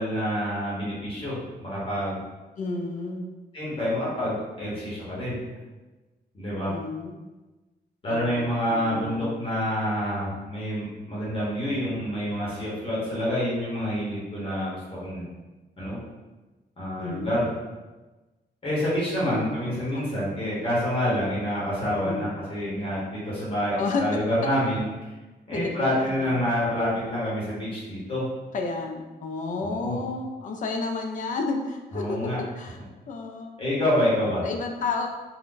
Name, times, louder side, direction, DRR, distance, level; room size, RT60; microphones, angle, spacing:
voice 1, 0.0-2.2 3.5-5.4 6.3-6.7 8.0-15.2 15.8-16.0 16.8-17.5 18.6-24.8 25.5-28.3 29.6-30.0 31.9-32.4 33.6-34.5, equal, 30° left, -8 dB, 0.9 m, -27 dB
voice 2, 2.6-3.3 6.7-7.2 8.1-9.4 17.0-17.4 19.3-20.1 22.0-22.3 23.8-24.4 25.5-26.4 28.5-32.8 33.1-33.5 34.4-35.1, left 3 dB, 50° left, 3 dB, 0.4 m, -31 dB
2.5 x 2.2 x 3.7 m, 1.2 s
wide cardioid pair, 165°, 17 cm